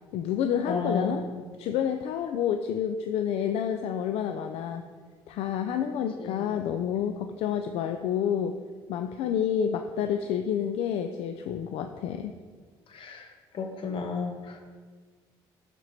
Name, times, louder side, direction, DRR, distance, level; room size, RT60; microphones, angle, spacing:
voice 1, 0.1-1.2 1.6-4.8 5.3-8.5 8.9-12.3, left 8 dB, 75° left, 7 dB, 0.5 m, -29 dB
voice 2, 0.7-1.5 6.2-6.4 12.9-13.3 13.5-14.6, left 4 dB, 55° left, 4 dB, 1.4 m, -32 dB
12.0 x 4.6 x 4.2 m, 1.5 s
supercardioid pair, 80°, 11 cm